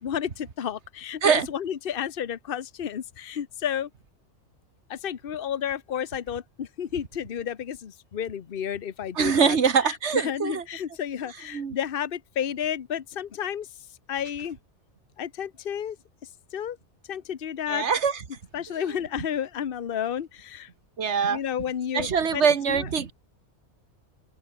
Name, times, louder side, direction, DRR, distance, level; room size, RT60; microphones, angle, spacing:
voice 1, 0.0-1.2 1.5-3.9 4.9-9.6 9.8-13.7 14.1-14.6 15.2-16.0 16.5-16.8 17.1-17.9 18.5-20.7 21.3-22.9, left 9 dB, 50° left, 1.1 m, -31 dB
voice 2, 9.2-10.6 11.5-11.8 17.7-18.2 18.8-18.9 21.0-21.4 21.9-23.1, right 6 dB, 70° right, 1.8 m, -23 dB
open air
omnidirectional pair, 1.2 m